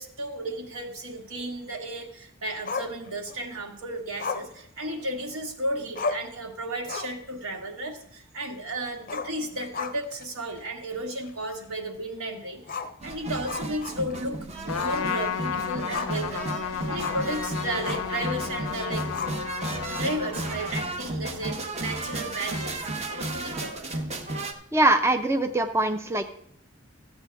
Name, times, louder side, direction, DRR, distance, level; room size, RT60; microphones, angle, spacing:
voice 1, 0.0-19.0 19.9-23.9, right 1 dB, 80° right, 2 dB, 1.6 m, -34 dB
Growling, 2.7-3.5 4.2-5.4 5.7-5.8 6.0-6.4 6.8-7.3 7.6-7.7 9.0-10.2 10.6-10.7 11.2-11.3 12.6-14.3 14.7-15.0 15.4-16.3 17.0-17.3 17.8-18.2 19.1-19.7, left 4 dB, 40° left, 0.5 m, -35 dB
sound 1, 13.0-24.5, right 2 dB, 30° right, 0.8 m, -34 dB
Trumpet, 14.7-20.8, left 7 dB, 90° left, 0.5 m, -33 dB
voice 2, 24.7-26.3, right 2 dB, 10° right, 6 dB, 0.4 m, -23 dB
13.5 x 8.2 x 3.4 m, 0.65 s
head